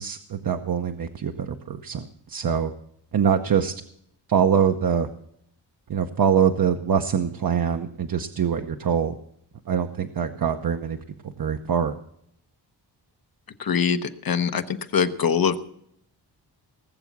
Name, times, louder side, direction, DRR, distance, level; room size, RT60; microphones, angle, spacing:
voice 1, 0.0-2.7 3.1-3.7 4.3-5.1 5.9-9.1 9.7-11.0 11.4-12.0, right 7 dB, 55° right, 5 dB, 0.9 m, -24 dB
voice 2, 13.6-15.6, left 7 dB, 55° left, 9 dB, 0.9 m, -23 dB
19.0 x 7.0 x 7.3 m, 0.72 s
cardioid pair, 85°, 42 cm